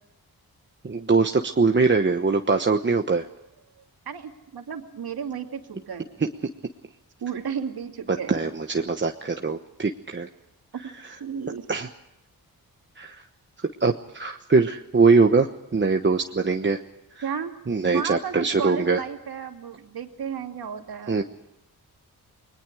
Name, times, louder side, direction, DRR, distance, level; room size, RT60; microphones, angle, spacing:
voice 1, 0.8-3.2 8.3-10.3 11.7-11.9 13.0-13.2 13.8-16.8 17.1-17.2 17.7-19.0 21.1-21.2, right 4 dB, 30° right, 4 dB, 1.1 m, -22 dB
voice 2, 4.1-6.1 7.2-8.3 10.7-11.7 17.2-17.5 17.9-21.2, right 7 dB, 75° right, 4 dB, 2.6 m, -33 dB
29.5 x 21.5 x 4.9 m, 0.89 s
cardioid pair, 90°, 37 cm